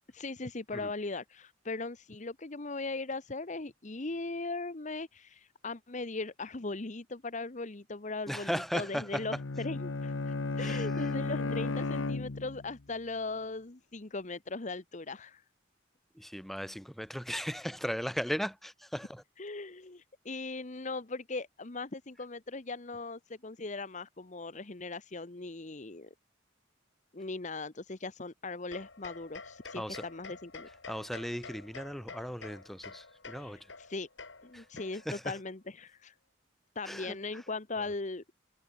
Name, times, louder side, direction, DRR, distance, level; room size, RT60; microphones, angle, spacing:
voice 1, 0.1-15.4 19.4-26.1 27.1-30.7 33.4-34.1 34.4-36.1 36.7-38.2, left 3 dB, 40° left, 1.0 m, -39 dB
voice 2, 8.3-9.2 10.6-11.1 11.4-11.7 16.1-19.2 29.7-30.1 30.9-33.6 34.5-34.6 35.0-35.4 36.8-37.2, equal, ahead, 4.7 m, -37 dB
Bowed string instrument, 9.1-12.8, left 3 dB, 85° left, 0.9 m, -34 dB
sound 1, 28.7-35.3, left 4 dB, 70° left, 4.2 m, -49 dB
head